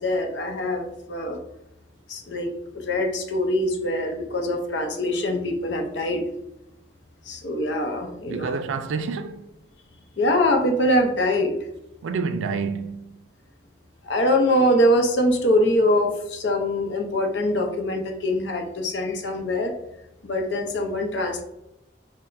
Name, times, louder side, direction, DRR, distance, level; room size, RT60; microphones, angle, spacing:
voice 1, 0.0-1.4 2.1-6.2 7.3-8.5 10.2-11.6 14.0-19.7 20.2-21.4, left 1 dB, 70° left, 0.6 m, -23 dB
voice 2, 8.3-9.5 12.0-13.2, right 5 dB, 90° right, 0.3 m, -28 dB
5.7 x 2.1 x 2.5 m
head